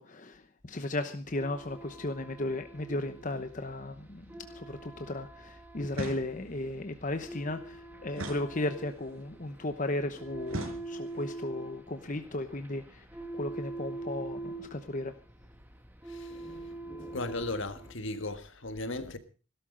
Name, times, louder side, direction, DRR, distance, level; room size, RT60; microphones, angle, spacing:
voice 1, 0.0-13.0 13.3-15.1, left 2 dB, 35° left, 0.9 m, -35 dB
sound 1, 1.3-17.9, right 2 dB, 10° right, 1.5 m, -44 dB
sound 2, 5.9-6.7 8.1-9.1 10.5-11.3, right 1 dB, 80° right, 5.1 m, -40 dB
voice 2, 17.1-19.2, left 2 dB, 65° left, 1.6 m, -36 dB
17.0 x 12.5 x 5.1 m
head